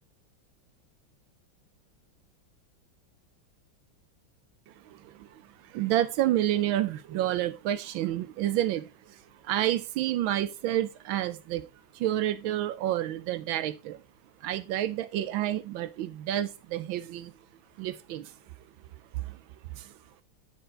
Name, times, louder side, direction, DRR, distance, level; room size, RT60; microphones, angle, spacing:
voice 1, 4.7-14.0 14.4-17.3 17.8-18.3 19.1-19.4 19.7-20.0, right 13 dB, 80° right, 1.5 m, -30 dB
9.3 x 3.8 x 4.0 m
omnidirectional pair, 2.2 m